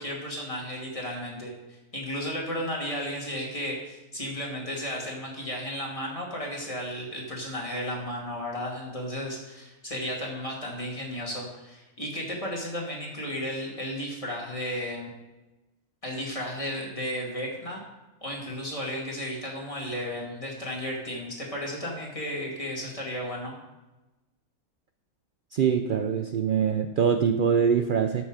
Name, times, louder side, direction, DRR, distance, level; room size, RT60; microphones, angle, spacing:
voice 1, 0.0-1.5 1.9-15.1 16.0-17.8 18.2-23.5, equal, 20° left, -2 dB, 2.6 m, -34 dB
voice 2, 25.5-28.3, right 7 dB, 75° right, 7 dB, 0.4 m, -24 dB
12.5 x 6.6 x 5.0 m, 1.1 s
omnidirectional pair, 1.5 m